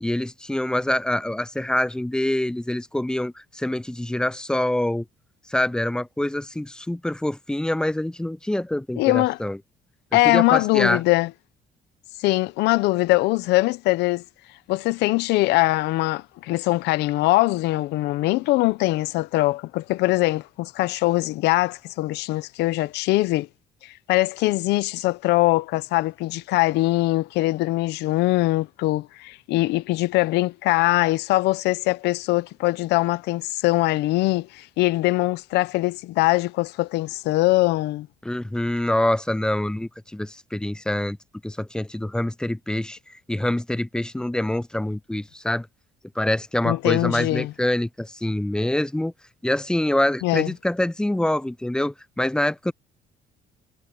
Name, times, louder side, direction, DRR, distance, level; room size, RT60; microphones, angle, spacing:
voice 1, 0.0-5.0 5.5-9.6 10.2-11.0 38.2-41.2 41.4-45.7 46.2-49.1 49.4-52.7, left 1 dB, 5° left, 0.5 m, -25 dB
voice 2, 9.0-9.4 10.1-11.3 12.2-14.2 14.7-23.5 24.1-38.1 46.6-47.5 50.2-50.5, left 19 dB, 85° left, 0.8 m, -22 dB
cardioid pair, 110°, 17 cm